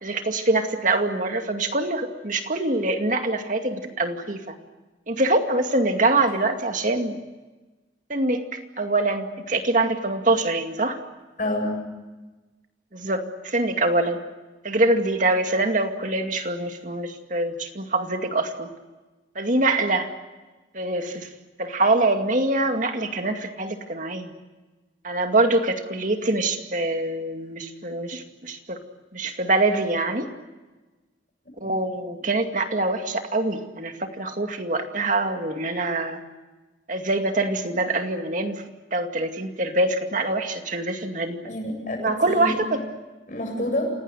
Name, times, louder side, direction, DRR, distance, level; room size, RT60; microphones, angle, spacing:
voice 1, 0.0-4.5 5.1-7.2 8.1-11.0 12.9-14.2 14.6-18.7 19.4-20.1 20.7-21.3 21.6-24.3 25.0-28.8 29.1-30.3 31.6-36.2 36.9-38.6 38.9-41.4 42.0-42.8, right 2 dB, 45° right, 5 dB, 2.3 m, -24 dB
voice 2, 11.4-11.8 31.6-31.7 41.4-42.6 43.3-43.9, left 1 dB, 45° left, 2 dB, 8.0 m, -28 dB
28.0 x 18.5 x 9.1 m, 1.2 s
head